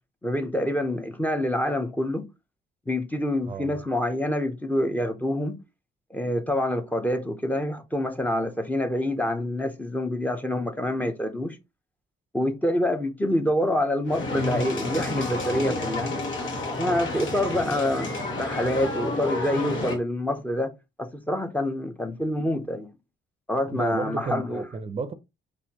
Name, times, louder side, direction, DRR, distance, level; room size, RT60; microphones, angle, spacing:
voice 1, 0.2-2.3 2.9-5.6 6.1-11.6 12.3-16.1 16.8-18.1 18.4-20.7 21.0-22.9 23.5-24.7, left 1 dB, 10° left, 0.6 m, -26 dB
sound 1, 14.1-20.0, left 2 dB, 80° left, 1.2 m, -30 dB
voice 2, 23.7-25.1, right 4 dB, 30° right, 0.5 m, -32 dB
4.2 x 2.6 x 2.8 m
cardioid pair, 90°, 20 cm